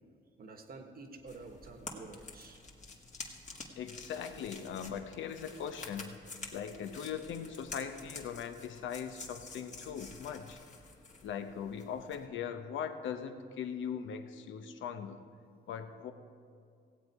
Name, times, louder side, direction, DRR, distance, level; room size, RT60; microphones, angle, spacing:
voice 1, 0.4-2.6, right 3 dB, 50° right, 5 dB, 1.3 m, -49 dB
sound 1, 1.3-12.3, left 3 dB, 35° left, 1.6 m, -49 dB
voice 2, 3.8-6.2 6.5-10.6 11.2-15.2 15.7-16.1, left 7 dB, 75° left, 8 dB, 0.8 m, -40 dB
16.5 x 8.1 x 4.8 m, 2.3 s
cardioid pair, 90°, 20 cm